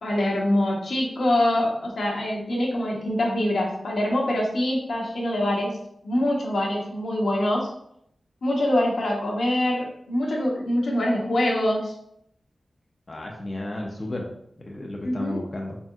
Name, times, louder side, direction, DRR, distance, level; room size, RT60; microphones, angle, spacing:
voice 1, 0.0-5.8 6.0-7.7 8.4-11.9 15.0-15.4, left 1 dB, 80° left, -2 dB, 1.0 m, -24 dB
voice 2, 13.1-14.3 14.7-15.8, left 1 dB, 45° left, -1 dB, 0.7 m, -33 dB
4.3 x 3.4 x 2.4 m, 0.72 s
cardioid pair, 45°, 0 cm